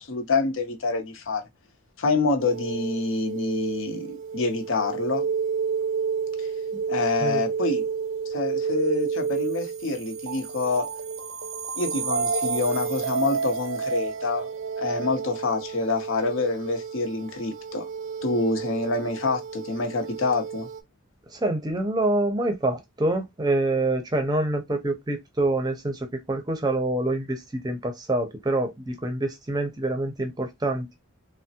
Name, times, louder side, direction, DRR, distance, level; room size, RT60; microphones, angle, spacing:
voice 1, 0.0-1.4 2.0-5.2 6.4-6.5 6.9-7.8 8.3-10.9 11.8-14.5 14.8-17.9 18.2-20.7, left 3 dB, 65° left, 0.7 m, -27 dB
sound 1, 2.4-20.8, right 5 dB, 70° right, 0.5 m, -30 dB
voice 2, 21.3-31.0, right 2 dB, 20° right, 0.6 m, -26 dB
3.3 x 2.0 x 2.7 m
head